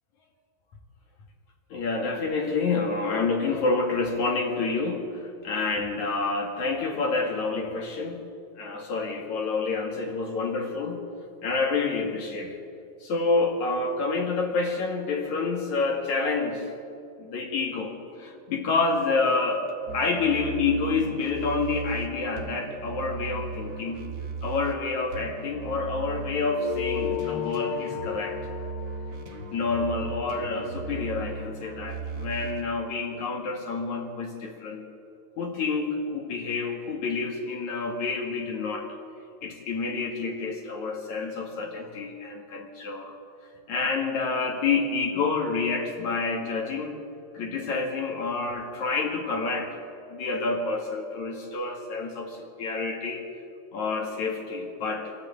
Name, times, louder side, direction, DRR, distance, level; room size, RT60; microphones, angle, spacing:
voice 1, 1.7-8.2 8.6-11.0 11.4-12.6 13.0-16.7 17.2-19.7 19.9-24.0 24.4-28.4 29.5-34.9 35.4-38.9 39.4-43.2 43.7-47.0 47.3-49.7 50.1-53.2 53.7-55.1, left 4 dB, 50° left, 2 dB, 2.9 m, -28 dB
sound 1, 19.9-24.8 25.1-32.6, right 5 dB, 70° right, 1.4 m, -37 dB
sound 2, 26.6-31.4, left 14 dB, 80° left, 2.8 m, -35 dB
24.0 x 14.5 x 8.7 m, 2.5 s
omnidirectional pair, 5.3 m